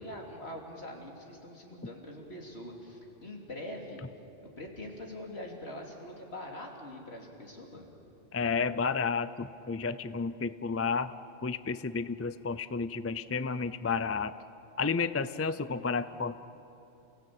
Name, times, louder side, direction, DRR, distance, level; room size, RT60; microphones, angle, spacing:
voice 1, 0.0-4.0 4.4-7.9, left 1 dB, 65° left, 0 dB, 3.4 m, -43 dB
voice 2, 8.3-11.1 11.4-14.3 14.8-16.4, left 5 dB, 25° left, 14 dB, 0.3 m, -31 dB
29.0 x 17.0 x 8.8 m, 2.9 s
omnidirectional pair, 1.2 m